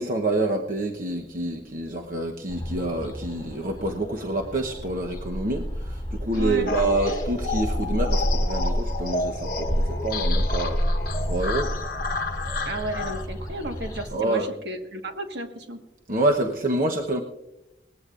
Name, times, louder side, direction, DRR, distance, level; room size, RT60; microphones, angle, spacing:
voice 1, 0.0-10.8 11.2-11.7 14.1-14.5 16.1-17.2, right 2 dB, 50° right, 2 dB, 1.0 m, -27 dB
sound 1, 2.5-14.1, equal, 20° left, 4.9 m, -29 dB
voice 2, 6.3-6.7 12.6-15.8, right 1 dB, 70° right, 5 dB, 1.6 m, -33 dB
sound 2, 6.7-13.2, left 3 dB, 50° left, 1.1 m, -31 dB
19.5 x 15.0 x 2.5 m, 0.90 s
head